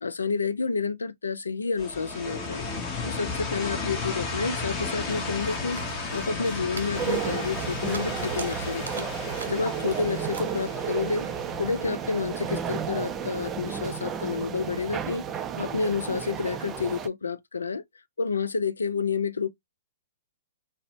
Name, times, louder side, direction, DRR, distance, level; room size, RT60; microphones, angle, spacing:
voice 1, 0.0-2.7 3.1-11.3 11.6-15.3 15.6-17.8 18.2-19.5, left 5 dB, 85° left, 0.4 m, -29 dB
sound 1, 1.8-12.5, left 4 dB, 25° left, 0.9 m, -34 dB
sound 2, 5.1-11.9, right 1 dB, 85° right, 0.8 m, -41 dB
sound 3, 6.9-17.1, right 8 dB, 20° right, 0.4 m, -33 dB
2.5 x 2.0 x 3.1 m
hypercardioid pair, 120°, 0 cm